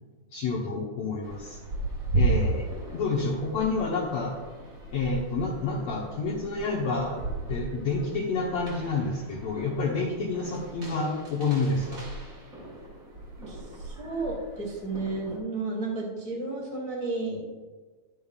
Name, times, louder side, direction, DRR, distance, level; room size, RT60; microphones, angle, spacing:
voice 1, 0.3-1.6 2.1-2.7 2.9-4.3 4.9-7.2 7.5-12.0, left 3 dB, 85° left, -4 dB, 1.5 m, -29 dB
sound 1, 1.2-15.4, right 3 dB, 60° right, 0.8 m, -35 dB
voice 2, 13.4-17.5, right 3 dB, 10° left, -5 dB, 0.3 m, -33 dB
11.0 x 9.1 x 2.4 m, 1.4 s
omnidirectional pair, 4.4 m